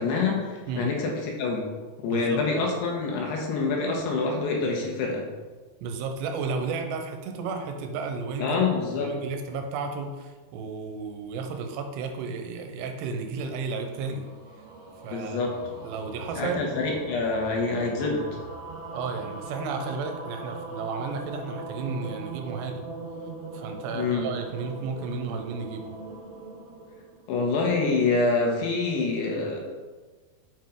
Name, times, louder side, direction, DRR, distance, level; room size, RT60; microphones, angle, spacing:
voice 1, 0.0-1.7 2.0-5.3 8.4-9.1 15.1-15.6 16.4-18.2 23.9-24.3 27.3-29.6, left 4 dB, 80° left, -1 dB, 3.3 m, -26 dB
voice 2, 2.1-2.4 5.8-14.2 15.0-15.5 15.8-16.6 18.9-22.8 23.5-25.9, right 4 dB, 90° right, 5 dB, 2.9 m, -33 dB
sound 1, 13.4-27.8, right 3 dB, 65° right, 2.0 m, -41 dB
7.3 x 5.8 x 3.8 m, 1.4 s
omnidirectional pair, 4.8 m